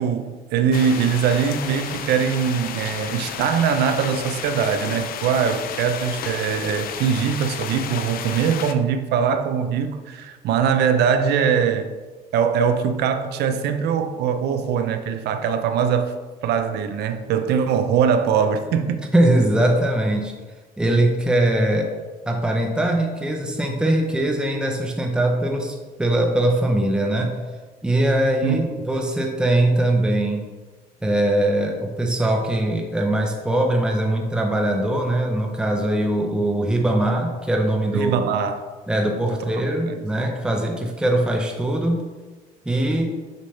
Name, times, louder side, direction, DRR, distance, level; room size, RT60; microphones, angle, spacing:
voice 1, 0.0-11.9 12.3-16.1 16.4-19.0 28.4-28.5 37.9-38.6 39.3-39.4 39.9-40.0, right 7 dB, 75° right, 8 dB, 0.6 m, -22 dB
sound 1, 0.7-8.7, left 8 dB, 60° left, 0.5 m, -32 dB
voice 2, 19.1-20.3 20.8-21.9 22.3-27.4 27.8-30.4 31.0-38.3 38.9-42.0 42.7-43.1, right 1 dB, 5° right, 2 dB, 0.7 m, -21 dB
6.7 x 5.3 x 3.3 m, 1.3 s
cardioid pair, 110°, 17 cm